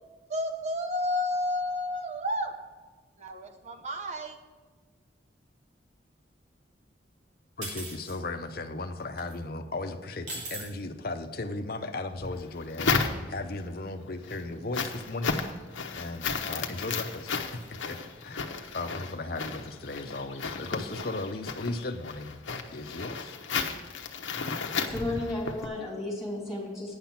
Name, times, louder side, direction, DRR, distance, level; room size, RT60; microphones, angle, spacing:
voice 1, 0.3-2.6 3.2-4.4, left 1 dB, 35° right, 5 dB, 0.9 m, -31 dB
voice 2, 7.6-15.4 15.9-23.4, left 2 dB, 50° left, 6 dB, 0.7 m, -36 dB
sound 1, 7.6-8.2 9.2-9.3 10.3-10.7, right 2 dB, 75° right, 2.9 m, -38 dB
sound 2, 12.2-13.6 14.1-25.7, left 5 dB, 85° left, 0.9 m, -33 dB
voice 3, 24.9-27.0, left 2 dB, ahead, -4 dB, 2.6 m, -33 dB
9.7 x 5.9 x 7.1 m, 1.3 s
head